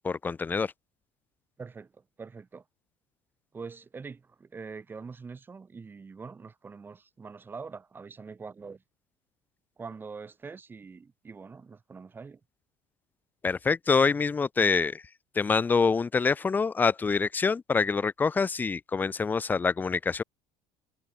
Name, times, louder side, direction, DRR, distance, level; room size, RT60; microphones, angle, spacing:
voice 1, 0.0-0.7 13.4-15.0 15.4-20.2, left 5 dB, 15° left, 0.6 m, -26 dB
voice 2, 1.6-2.6 3.5-8.8 9.8-12.4, right 5 dB, 15° right, 1.9 m, -44 dB
cardioid pair, 150°, 12 cm